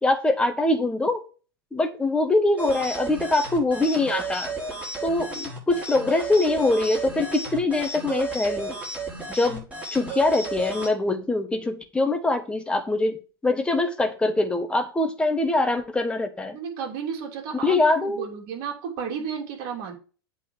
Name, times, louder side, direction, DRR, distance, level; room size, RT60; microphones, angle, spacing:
voice 1, 0.0-1.2 1.7-4.5 5.0-8.8 9.3-9.7 9.9-16.6 17.6-18.3, left 2 dB, 10° left, 1.4 m, -23 dB
sound 1, 2.6-10.9, right 3 dB, 10° right, 4.6 m, -33 dB
voice 2, 16.5-17.7 18.0-20.0, right 7 dB, 45° right, 3.1 m, -32 dB
8.2 x 4.3 x 6.5 m
figure-of-eight pair, 100°, 12 cm